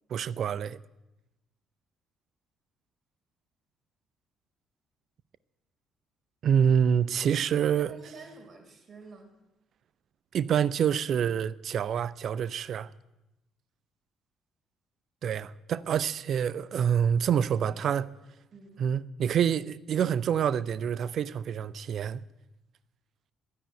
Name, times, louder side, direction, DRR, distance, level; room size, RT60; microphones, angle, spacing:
voice 1, 0.1-0.8 6.4-7.9 10.3-12.9 15.2-18.0 18.8-22.2, right 8 dB, 50° right, 0.5 m, -27 dB
voice 2, 7.8-9.3 15.8-15.9 17.6-17.9 18.5-18.8, right 4 dB, 35° right, 3.9 m, -49 dB
11.5 x 10.0 x 8.9 m
figure-of-eight pair, 45°, 0 cm